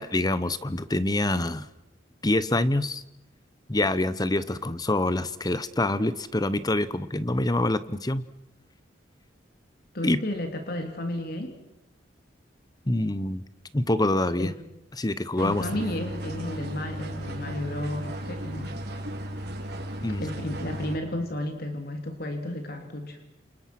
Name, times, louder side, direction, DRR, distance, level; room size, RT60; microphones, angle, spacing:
voice 1, 0.0-1.7 2.2-3.0 3.7-8.2 10.0-10.2 12.8-13.4 13.7-14.5 15.0-15.7 20.0-20.2, left 1 dB, 20° left, 14 dB, 1.0 m, -26 dB
voice 2, 9.9-11.6 14.4-14.5 15.4-18.7 20.2-23.2, left 1 dB, 60° left, 5 dB, 2.9 m, -32 dB
sound 1, 15.4-21.0, equal, 65° right, 4.3 m, -35 dB
29.0 x 28.5 x 6.1 m, 0.88 s
head